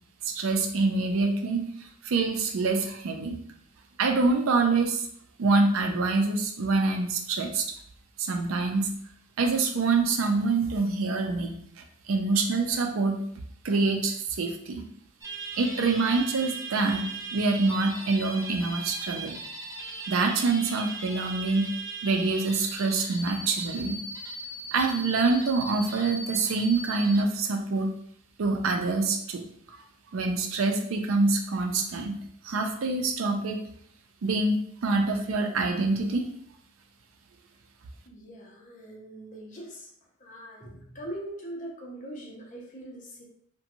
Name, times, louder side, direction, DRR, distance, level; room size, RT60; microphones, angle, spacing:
voice 1, 0.2-3.4 4.0-5.1 5.4-7.7 8.2-8.9 9.4-11.5 12.1-13.2 13.6-14.9 15.6-19.3 20.1-21.7 22.0-24.0 24.7-27.9 28.4-29.4 29.7-29.8 30.1-32.2 32.4-33.6 34.2-36.2, right 3 dB, 80° right, 4 dB, 0.4 m, -26 dB
sound 1, 15.2-27.2, right 2 dB, 15° right, 0.4 m, -38 dB
voice 2, 38.0-43.2, right 1 dB, 40° left, -2 dB, 0.7 m, -42 dB
2.8 x 2.2 x 2.6 m, 0.65 s
head